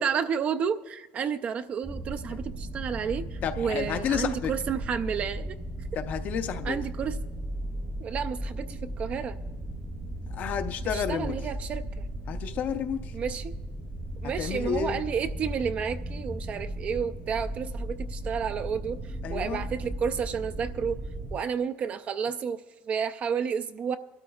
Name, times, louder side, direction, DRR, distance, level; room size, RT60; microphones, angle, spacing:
voice 1, 0.0-5.6 6.6-7.2 8.0-9.4 10.9-11.8 13.1-13.5 14.2-21.0 21.3-24.0, right 7 dB, 35° right, 9 dB, 0.4 m, -31 dB
sound 1, 1.8-21.4, right 1 dB, 15° right, 0.8 m, -36 dB
voice 2, 3.4-4.5 6.0-6.8 10.3-11.3 12.3-13.2 14.2-15.0 19.2-19.7, left 8 dB, 40° left, 9 dB, 0.6 m, -31 dB
24.0 x 12.5 x 2.3 m, 1.1 s
cardioid pair, 160°, 4 cm